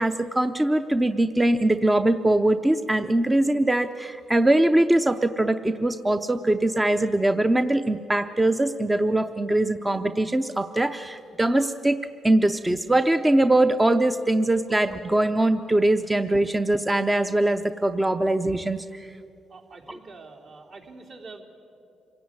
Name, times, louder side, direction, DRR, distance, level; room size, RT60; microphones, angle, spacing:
voice 1, 0.0-12.0 12.2-19.1, right 1 dB, 15° right, 8 dB, 0.7 m, -22 dB
voice 2, 19.5-21.4, right 3 dB, 60° right, -1 dB, 3.6 m, -45 dB
26.5 x 16.5 x 9.5 m, 2.8 s
cardioid pair, 90°, 0 cm